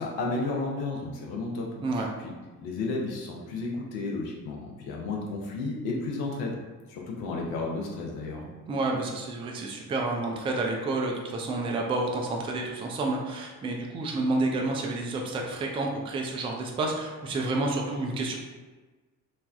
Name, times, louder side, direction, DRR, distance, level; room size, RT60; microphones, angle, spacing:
voice 1, 0.0-1.7 2.6-6.6 6.9-8.5, left 3 dB, 60° left, -1 dB, 0.7 m, -32 dB
voice 2, 8.7-18.3, right 2 dB, 15° right, 0 dB, 0.3 m, -29 dB
3.2 x 2.1 x 2.4 m, 1.3 s
figure-of-eight pair, 45°, 43 cm